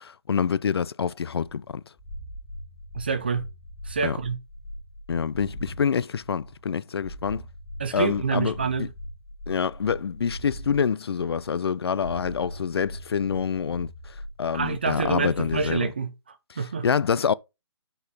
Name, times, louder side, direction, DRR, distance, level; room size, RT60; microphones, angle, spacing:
voice 1, 0.3-1.8 4.0-4.2 5.1-7.4 7.9-8.5 8.8-8.9 9.5-15.9 16.5-17.3, left 6 dB, 65° left, 0.4 m, -26 dB
sound 1, 1.6-5.8 6.2-10.8 11.2-11.7 12.0-15.8, equal, 20° left, 2.1 m, -40 dB
voice 2, 2.9-3.5 3.8-4.4 7.8-8.9 14.5-16.9, right 5 dB, 20° right, 0.4 m, -27 dB
5.5 x 4.2 x 5.3 m
hypercardioid pair, 175°, 15 cm